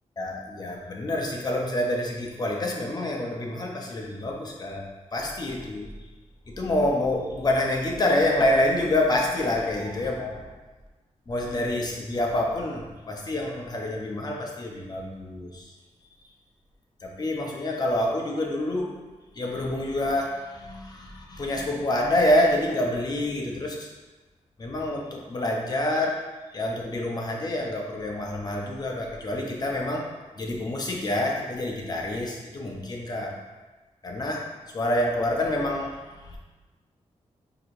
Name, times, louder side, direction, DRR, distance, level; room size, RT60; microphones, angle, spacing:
voice 1, 0.2-4.8 5.1-5.9 6.5-10.5 11.3-15.7 17.0-18.9 19.3-23.9 24.6-26.2 26.5-30.1 30.4-33.3 34.0-34.4 34.7-36.4, left 1 dB, 35° left, -1 dB, 0.7 m, -27 dB
6.0 x 2.9 x 2.6 m, 1.2 s
wide cardioid pair, 150°, 12 cm